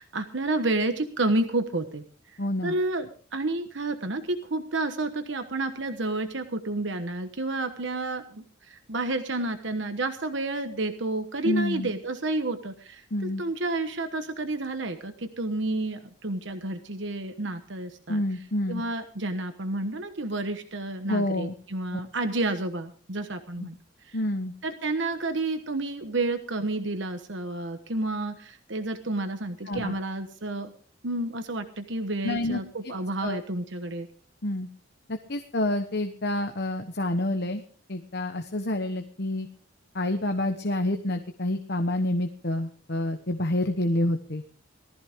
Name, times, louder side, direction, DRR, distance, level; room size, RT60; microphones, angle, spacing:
voice 1, 0.0-2.0 2.6-18.2 18.7-23.8 24.1-24.2 24.6-30.7 31.0-34.1, right 2 dB, 65° right, 7 dB, 1.2 m, -30 dB
voice 2, 2.4-2.8 11.4-11.9 13.1-13.4 18.1-18.8 21.1-21.5 21.9-22.0 23.6-23.7 24.1-24.5 29.7-30.0 32.2-32.9 33.2-33.4 34.4-34.7 35.1-37.6 37.9-39.5 39.9-44.4, left 1 dB, 50° left, 6 dB, 1.1 m, -28 dB
19.0 x 14.0 x 3.7 m, 0.43 s
head